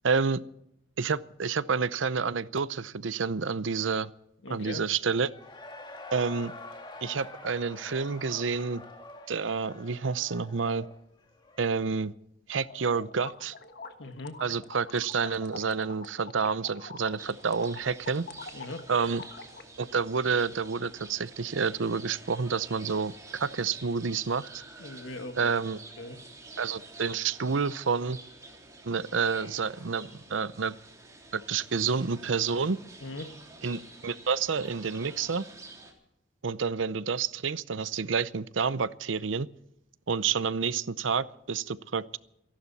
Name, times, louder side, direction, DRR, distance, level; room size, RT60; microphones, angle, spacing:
voice 1, 0.0-0.4 1.0-4.1 4.5-5.3 6.1-6.5 7.0-8.8 9.3-10.9 11.6-12.1 12.5-13.5 14.4-18.2 18.9-19.2 19.8-24.6 25.3-25.8 26.6-28.2 28.9-30.7 31.3-32.8 33.6-35.5 36.4-39.5 40.1-42.2, right 5 dB, 85° right, 16 dB, 0.7 m, -29 dB
voice 2, 4.4-4.8 14.0-14.4 18.5-18.8 24.8-25.5 26.0-26.2 33.0-33.3, left 2 dB, 80° left, 7 dB, 1.7 m, -40 dB
Cheering / Crowd, 5.1-11.8, left 2 dB, 25° left, 1.9 m, -46 dB
sound 1, 12.6-19.6, left 4 dB, 55° left, 1.4 m, -45 dB
sound 2, 17.2-35.9, right 3 dB, 15° right, 3.3 m, -49 dB
28.0 x 11.5 x 4.2 m, 0.80 s
head